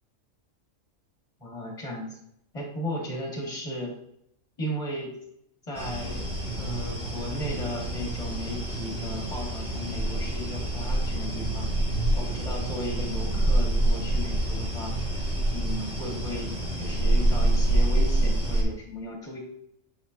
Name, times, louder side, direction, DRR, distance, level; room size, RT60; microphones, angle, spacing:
voice 1, 1.4-2.2 2.5-3.9 4.6-5.1 5.7-6.3 6.6-11.7 12.2-14.9 15.5-19.4, left 1 dB, 25° left, -1 dB, 1.9 m, -36 dB
sound 1, 5.7-18.6, right 1 dB, 5° right, 1.9 m, -26 dB
8.7 x 4.2 x 2.6 m, 0.75 s
omnidirectional pair, 1.4 m